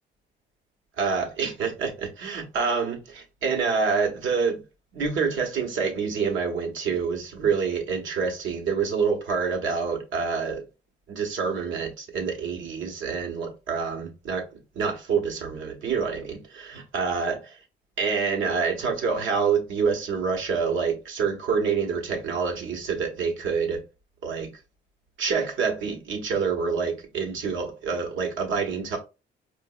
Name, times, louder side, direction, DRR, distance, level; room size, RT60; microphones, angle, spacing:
voice 1, 1.0-4.6 4.9-10.6 11.1-14.4 14.7-17.4 18.0-23.8 24.2-24.5 25.2-29.0, right 5 dB, 75° right, 1.1 m, -27 dB
4.7 x 2.4 x 2.4 m
cardioid pair, 90°, 20 cm